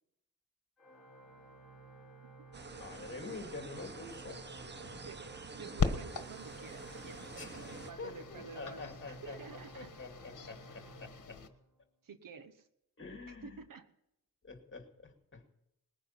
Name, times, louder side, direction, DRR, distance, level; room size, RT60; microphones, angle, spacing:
Organ, 0.8-11.9, right 3 dB, ahead, 5.9 m, -55 dB
sound 1, 2.5-7.9, right 4 dB, 35° right, 0.8 m, -48 dB
voice 1, 2.8-5.0 7.4-9.4 9.8-11.4 13.0-13.6 14.4-15.5, left 3 dB, 35° left, 4 dB, 2.5 m, -47 dB
voice 2, 5.0-10.0 12.0-12.7 13.3-13.9, right 5 dB, 80° right, 11 dB, 1.2 m, -50 dB
sound 2, 5.8-11.5, left 5 dB, 70° left, 1.4 m, -40 dB
20.0 x 9.9 x 5.8 m, 0.82 s
wide cardioid pair, 140°, 33 cm